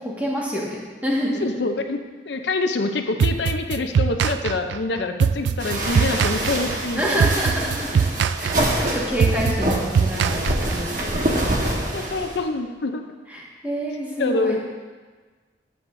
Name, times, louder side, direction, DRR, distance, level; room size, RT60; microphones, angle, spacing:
voice 1, 0.0-1.5 6.9-8.1 8.4-11.4 13.3-14.6, equal, 10° right, -5 dB, 1.7 m, -27 dB
voice 2, 1.4-7.0 11.9-13.0 14.2-14.6, left 3 dB, 75° left, 6 dB, 0.6 m, -26 dB
sound 1, 3.2-11.0, right 6 dB, 85° right, 0.3 m, -22 dB
sound 2, 5.6-12.4, right 1 dB, 50° right, 1.3 m, -25 dB
14.0 x 7.8 x 2.6 m, 1.4 s
head